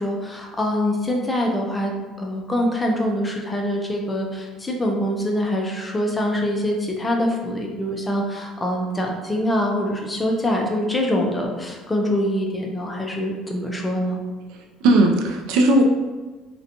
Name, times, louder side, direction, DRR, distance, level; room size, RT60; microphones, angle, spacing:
voice 1, 0.0-1.9 2.2-14.2, left 1 dB, 10° left, 0 dB, 0.3 m, -24 dB
voice 2, 14.5-15.8, right 2 dB, 75° right, 2 dB, 0.4 m, -18 dB
2.5 x 2.1 x 2.7 m, 1.3 s
cardioid pair, 165°, 0 cm